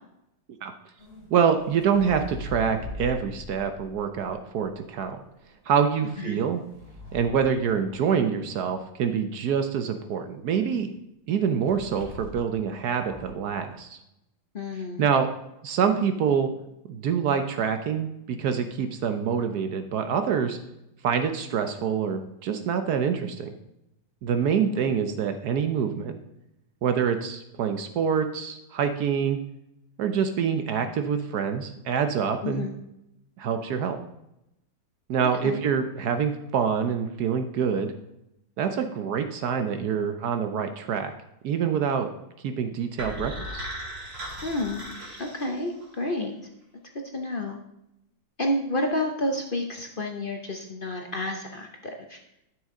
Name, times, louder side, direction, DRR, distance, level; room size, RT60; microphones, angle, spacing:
sound 1, 1.0-5.1 6.1-8.4 11.7-12.6 13.0-13.4, left 2 dB, 20° left, 1.8 m, -42 dB
voice 1, 1.3-5.2 5.7-6.6 7.1-10.9 11.3-14.0 15.0-15.3 15.6-16.5 16.9-20.6 21.0-23.5 24.2-26.1 26.8-29.4 30.0-32.7 33.4-34.0 35.1-37.9 38.6-41.1 41.4-42.1 42.4-43.7, right 7 dB, 65° right, 7 dB, 1.2 m, -26 dB
voice 2, 14.5-15.1 32.4-32.8 35.2-35.6 44.4-44.8 45.2-46.3 47.1-47.6 48.4-52.2, left 1 dB, 45° left, 3 dB, 0.7 m, -30 dB
sound 2, 43.0-46.0, equal, 90° right, 3.1 m, -37 dB
12.0 x 6.4 x 3.7 m, 0.85 s
omnidirectional pair, 1.9 m